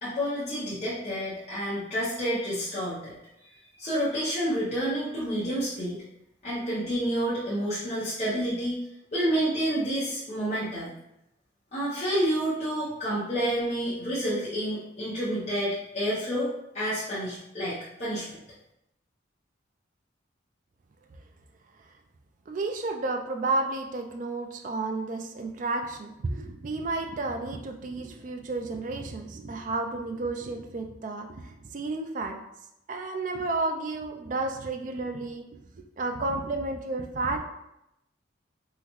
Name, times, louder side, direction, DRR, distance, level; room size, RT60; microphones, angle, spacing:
voice 1, 0.0-3.2 3.4-3.5 3.8-6.0 6.4-8.8 9.1-10.9 11.7-18.4, equal, 35° left, -10 dB, 0.7 m, -29 dB
voice 2, 22.5-32.4 32.9-35.4 36.0-37.4, right 3 dB, 40° right, 4 dB, 0.3 m, -31 dB
3.7 x 2.1 x 2.9 m, 0.85 s
head